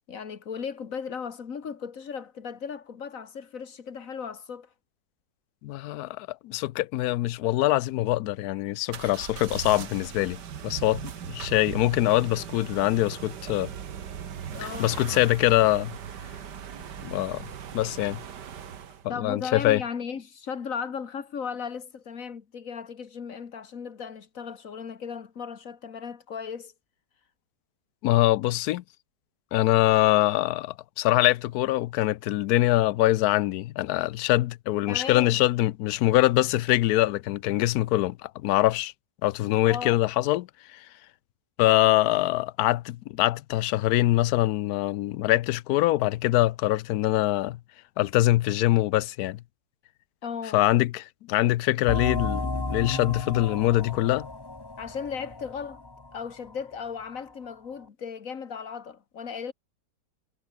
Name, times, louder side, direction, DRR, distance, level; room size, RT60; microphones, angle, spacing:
voice 1, 0.1-4.7 14.5-15.2 19.1-26.7 34.9-35.4 39.7-40.0 50.2-50.6 54.8-55.8 56.1-59.5, left 6 dB, 50° left, 1.9 m, -36 dB
voice 2, 5.6-13.7 14.8-16.0 17.0-17.4 17.7-18.2 19.0-19.8 28.0-28.8 29.5-38.9 39.2-40.8 41.6-47.6 48.0-49.4 50.5-54.3, left 16 dB, 70° left, 1.0 m, -24 dB
sound 1, 8.9-19.1, right 8 dB, 70° right, 2.0 m, -39 dB
sound 2, 51.9-57.2, left 2 dB, 15° left, 1.2 m, -34 dB
omnidirectional pair, 1.9 m